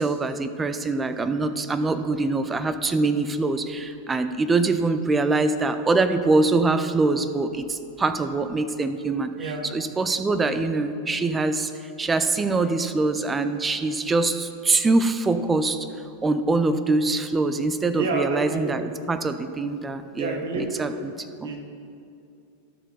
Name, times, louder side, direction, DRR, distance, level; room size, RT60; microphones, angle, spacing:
voice 1, 0.0-11.7 12.0-15.9 16.2-20.9 21.4-21.5, right 3 dB, 15° right, 10 dB, 0.4 m, -24 dB
voice 2, 18.0-18.7 20.1-20.9 21.4-21.6, right 2 dB, 70° right, 2 dB, 1.4 m, -29 dB
12.5 x 4.5 x 4.7 m, 2.5 s
hypercardioid pair, 105°, 0 cm